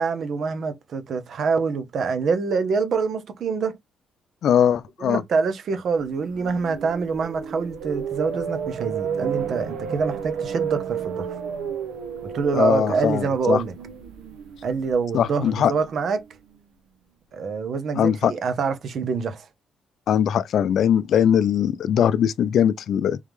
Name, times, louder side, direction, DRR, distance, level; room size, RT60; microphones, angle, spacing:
voice 1, 0.0-3.8 5.0-11.3 12.2-13.7 14.6-16.2 17.3-19.4, right 5 dB, 60° right, 0.9 m, -25 dB
voice 2, 4.4-5.2 12.5-13.6 15.1-15.7 17.9-18.3 20.1-23.2, left 9 dB, 70° left, 0.4 m, -20 dB
sound 1, 6.0-16.2, right 7 dB, 90° right, 0.7 m, -32 dB
3.6 x 3.4 x 3.2 m
cardioid pair, 90°, 0 cm